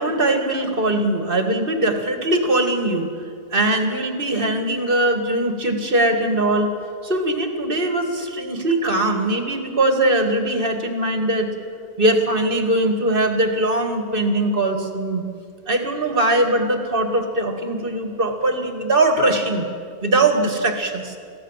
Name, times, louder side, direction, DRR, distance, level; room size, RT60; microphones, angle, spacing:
voice 1, 0.0-3.1 3.5-6.7 7.0-11.5 12.0-15.2 15.7-19.6 20.0-21.2, right 1 dB, 35° right, 6 dB, 2.1 m, -21 dB
23.0 x 15.5 x 7.4 m, 2.3 s
omnidirectional pair, 1.6 m